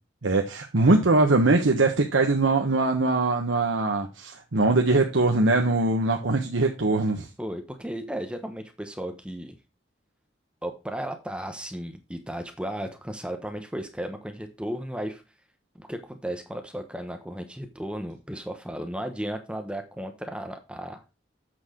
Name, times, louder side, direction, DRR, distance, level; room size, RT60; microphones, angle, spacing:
voice 1, 0.2-7.3, right 2 dB, 85° right, 2 dB, 1.1 m, -22 dB
voice 2, 7.4-9.5 10.6-15.2 15.8-21.0, equal, 5° right, 6 dB, 1.0 m, -35 dB
8.1 x 6.3 x 3.8 m, 0.29 s
head